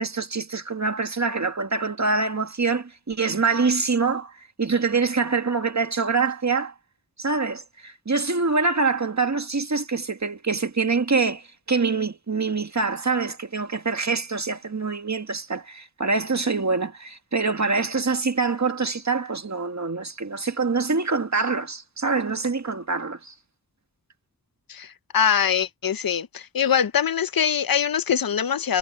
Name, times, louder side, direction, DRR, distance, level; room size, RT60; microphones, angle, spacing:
voice 1, 0.0-4.3 4.6-6.7 7.2-11.4 11.7-23.3, right 4 dB, 55° right, 1.8 m, -25 dB
voice 2, 25.1-28.8, left 8 dB, 85° left, 0.7 m, -23 dB
wide cardioid pair, 60°, 34 cm